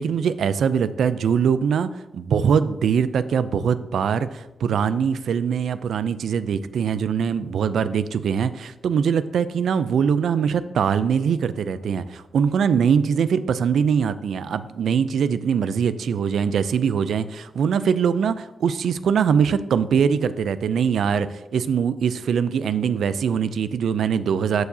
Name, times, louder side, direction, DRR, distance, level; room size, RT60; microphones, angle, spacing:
voice 1, 0.0-24.7, right 7 dB, 85° right, 14 dB, 0.4 m, -22 dB
14.0 x 4.7 x 2.7 m, 0.97 s
wide cardioid pair, 130°, 0 cm